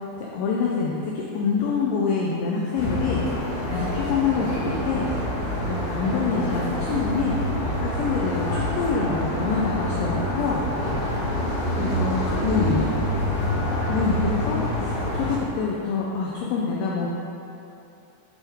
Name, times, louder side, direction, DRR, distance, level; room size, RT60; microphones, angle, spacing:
voice 1, 0.2-3.2 3.7-5.1 5.7-7.3 7.8-10.6 11.8-12.8 13.9-17.1, left 5 dB, 90° left, -3 dB, 2.6 m, -26 dB
sound 1, 2.8-15.4, equal, 60° left, 2.5 m, -27 dB
voice 2, 11.2-13.4, right 2 dB, 80° right, -6 dB, 3.7 m, -36 dB
8.3 x 4.5 x 3.5 m, 2.8 s
omnidirectional pair, 6.0 m